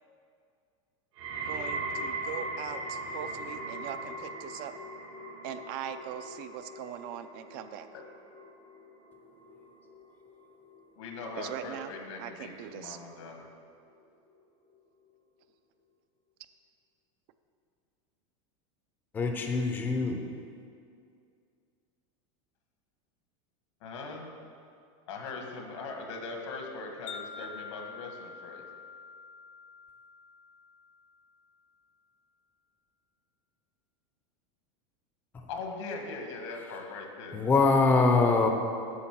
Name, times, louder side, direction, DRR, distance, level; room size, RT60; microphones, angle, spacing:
sound 1, 1.2-12.3 12.6-13.1 13.8-13.9, right 2 dB, 80° right, 2.2 m, -40 dB
voice 1, 1.5-4.7 5.4-7.9 11.4-11.9 12.2-13.0, right 10 dB, 45° right, 10 dB, 0.4 m, -41 dB
voice 2, 10.9-13.4 23.8-24.3 25.1-28.6 35.5-37.4, left 3 dB, 75° left, 2 dB, 1.6 m, -40 dB
voice 3, 19.1-20.2 37.3-38.5, left 3 dB, 15° left, 3 dB, 0.6 m, -23 dB
Wind chime, 27.1-31.4, left 5 dB, 45° left, 0.8 m, -46 dB
8.5 x 6.3 x 6.0 m, 2.4 s
supercardioid pair, 165°, 16 cm